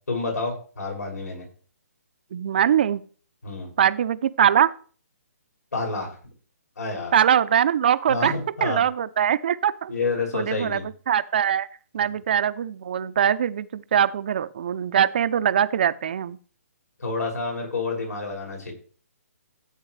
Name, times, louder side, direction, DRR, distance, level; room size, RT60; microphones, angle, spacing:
voice 1, 0.1-1.5 3.4-3.7 5.7-6.1 6.8-7.1 8.1-8.8 9.9-10.8 17.0-18.7, left 3 dB, 90° left, 0 dB, 6.5 m, -29 dB
voice 2, 2.3-3.0 3.8-4.7 7.1-8.4 8.6-9.9 10.3-11.7 11.9-16.4, right 9 dB, 40° right, 14 dB, 0.5 m, -22 dB
14.5 x 8.1 x 3.3 m, 0.42 s
hypercardioid pair, 170°, 9 cm